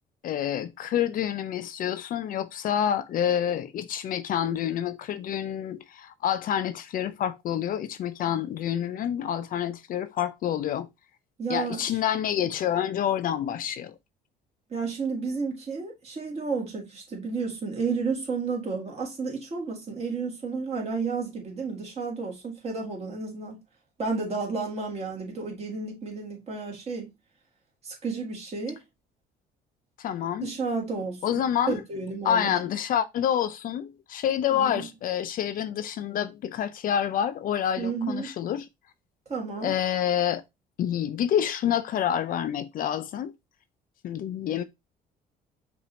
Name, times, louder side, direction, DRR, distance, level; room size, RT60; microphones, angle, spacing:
voice 1, 0.2-10.9 11.5-13.9 30.0-30.5 31.2-31.8 32.2-38.7 39.6-40.4 40.8-43.3 44.0-44.6, left 9 dB, 55° left, 0.5 m, -28 dB
voice 2, 11.4-12.0 14.7-23.6 24.0-27.1 27.8-28.8 30.4-32.5 34.5-34.9 37.8-38.3 39.3-39.7, right 4 dB, 40° right, 2.0 m, -32 dB
5.8 x 2.7 x 3.0 m
cardioid pair, 110°, 17 cm